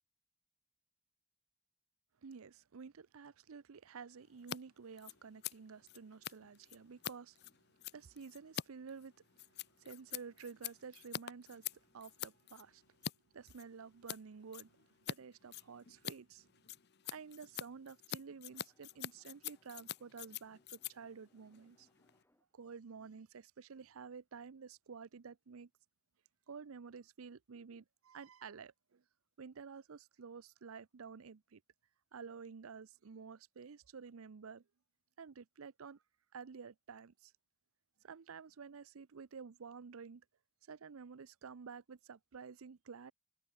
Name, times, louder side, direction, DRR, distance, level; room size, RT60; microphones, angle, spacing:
voice 1, 2.2-7.4 7.8-9.5 9.8-12.8 13.3-16.5 17.1-21.9 22.5-25.7 26.5-29.0 29.4-31.6 32.1-34.6 35.2-36.0 36.3-37.3 38.0-40.2 40.7-43.1, right 5 dB, 80° right, 0.6 m, -51 dB
Scissors, 4.4-4.6 4.8-13.1 13.5-14.2 14.5-15.2 15.4-22.2, left 9 dB, 50° left, 0.8 m, -46 dB
sound 1, 18.1-22.6, left 1 dB, 10° left, 3.0 m, -78 dB
head